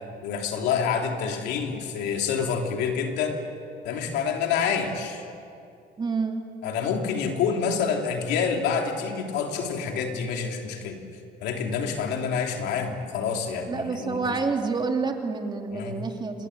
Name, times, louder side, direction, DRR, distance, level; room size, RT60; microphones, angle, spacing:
voice 1, 0.2-3.4 3.8-5.2 6.6-11.0 11.4-14.4 15.7-16.0, left 6 dB, 85° left, 2 dB, 3.3 m, -27 dB
voice 2, 6.0-6.4 13.7-16.5, right 4 dB, 25° right, 3 dB, 2.7 m, -28 dB
27.0 x 20.5 x 8.2 m, 2.5 s
cardioid pair, 110°, 17 cm